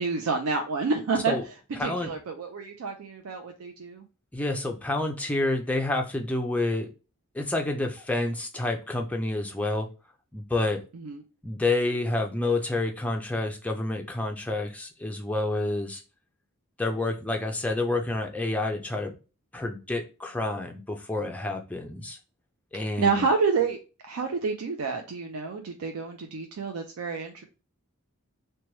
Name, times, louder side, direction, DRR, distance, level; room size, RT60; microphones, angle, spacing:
voice 1, 0.0-1.4 1.8-4.0 10.9-11.2 23.0-23.8 24.0-27.4, right 4 dB, 70° right, 0.4 m, -28 dB
voice 2, 1.8-2.1 4.3-6.9 7.3-9.9 10.3-10.8 11.4-16.0 16.8-19.2 19.5-22.2 22.7-23.3, left 2 dB, 5° left, 0.4 m, -29 dB
2.9 x 2.2 x 3.0 m
head